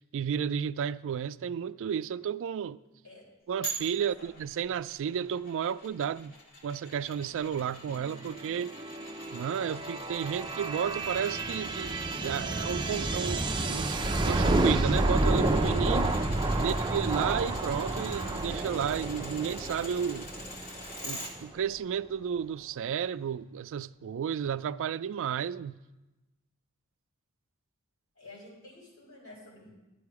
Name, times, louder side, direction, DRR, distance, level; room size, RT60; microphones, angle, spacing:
voice 1, 0.0-2.8 3.5-6.3 6.6-8.7 9.3-14.0 14.2-16.2 16.6-20.3 21.0-25.8, right 8 dB, 65° right, 0.3 m, -32 dB
sound 1, 3.6-21.3 21.7-21.8, equal, 45° left, 2.0 m, -44 dB
sound 2, 8.0-21.5, right 2 dB, 20° right, 0.6 m, -30 dB
voice 2, 16.6-16.9 28.2-29.7, left 2 dB, 75° left, 4.5 m, -50 dB
11.5 x 9.1 x 4.8 m
head